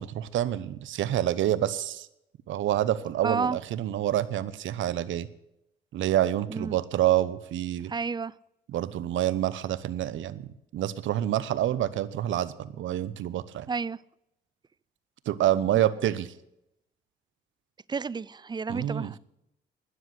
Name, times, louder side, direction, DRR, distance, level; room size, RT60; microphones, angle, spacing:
voice 1, 0.0-2.1 2.5-5.3 5.9-7.9 8.7-13.7 15.3-16.3 18.7-19.1, right 12 dB, 75° right, 0.9 m, -27 dB
voice 2, 3.2-3.6 6.5-6.8 7.9-8.3 13.7-14.0 17.9-19.2, right 5 dB, 20° right, 0.4 m, -31 dB
12.5 x 10.0 x 7.9 m
cardioid pair, 90°, 20 cm